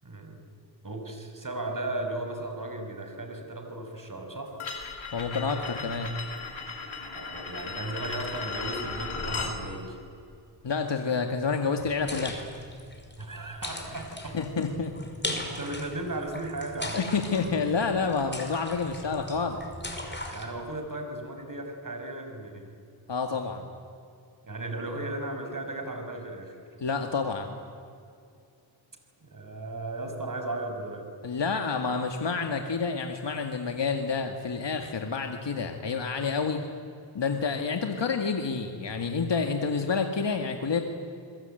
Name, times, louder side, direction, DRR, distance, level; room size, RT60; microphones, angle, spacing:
voice 1, 0.0-0.5 0.8-4.5 7.1-10.0 13.2-14.4 15.2-17.2 20.3-22.8 24.4-26.6 29.2-31.1, right 2 dB, 45° right, 5 dB, 6.0 m, -36 dB
sound 1, 4.6-9.6, left 4 dB, 85° left, 4.1 m, -36 dB
voice 2, 5.1-6.1 10.6-12.3 14.3-14.9 16.9-19.6 23.1-23.7 26.8-27.6 31.2-36.6 37.1-40.8, left 5 dB, 65° left, 4 dB, 2.0 m, -29 dB
Splashing Water, 11.8-20.5, left 1 dB, 25° left, 5.4 m, -39 dB
29.0 x 22.5 x 9.2 m, 2.5 s
cardioid pair, 55°, 46 cm